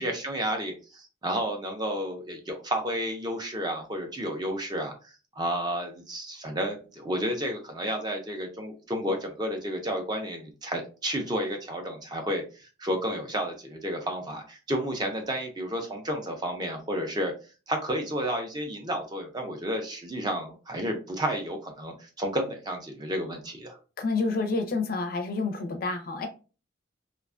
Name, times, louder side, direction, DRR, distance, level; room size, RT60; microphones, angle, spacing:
voice 1, 0.0-17.3 17.7-23.8, equal, 20° right, 0.4 m, -31 dB
voice 2, 24.0-26.3, left 3 dB, 50° left, 0.4 m, -28 dB
2.4 x 2.2 x 2.4 m
head